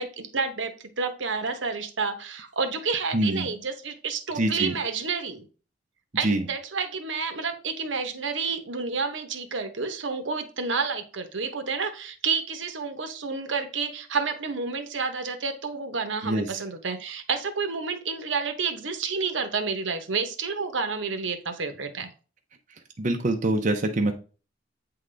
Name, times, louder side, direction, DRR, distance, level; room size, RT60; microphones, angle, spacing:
voice 1, 0.0-5.4 6.1-22.1, right 5 dB, 75° right, 8 dB, 0.9 m, -30 dB
voice 2, 3.1-3.5 4.3-4.7 6.2-6.4 16.2-16.6 23.0-24.1, right 1 dB, 40° right, 4 dB, 0.6 m, -25 dB
8.4 x 3.8 x 3.3 m, 0.37 s
head